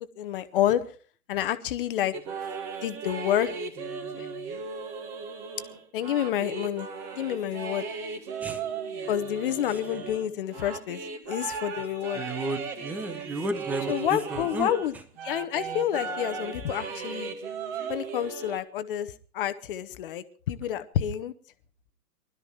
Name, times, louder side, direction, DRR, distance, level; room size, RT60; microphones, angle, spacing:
voice 1, 0.2-0.8 1.3-2.1 2.8-3.5 4.2-4.3 5.9-6.9 7.1-7.8 9.1-12.2 13.9-17.3 17.9-21.3, left 11 dB, 35° left, 12 dB, 1.1 m, -29 dB
sound 1, 2.1-14.9 15.2-18.6, right 5 dB, 30° right, 2.3 m, -36 dB
voice 2, 12.2-14.7, right 2 dB, 5° right, 9 dB, 0.6 m, -32 dB
20.5 x 12.5 x 4.4 m, 0.40 s
figure-of-eight pair, 125°, 48 cm